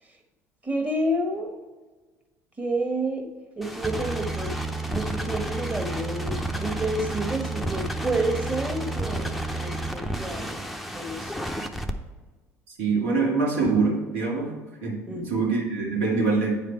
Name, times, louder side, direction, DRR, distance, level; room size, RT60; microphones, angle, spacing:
voice 1, 0.6-1.5 2.6-3.3 3.6-4.5 4.9-10.6 10.9-11.5 15.1-15.5, right 1 dB, 20° right, 3 dB, 1.5 m, -30 dB
sound 1, 3.6-11.9, right 1 dB, ahead, 0.7 m, -31 dB
voice 2, 12.8-14.5 14.8-16.7, right 4 dB, 65° right, -2 dB, 2.0 m, -24 dB
9.2 x 5.0 x 4.4 m, 1.3 s
figure-of-eight pair, 60°, 8 cm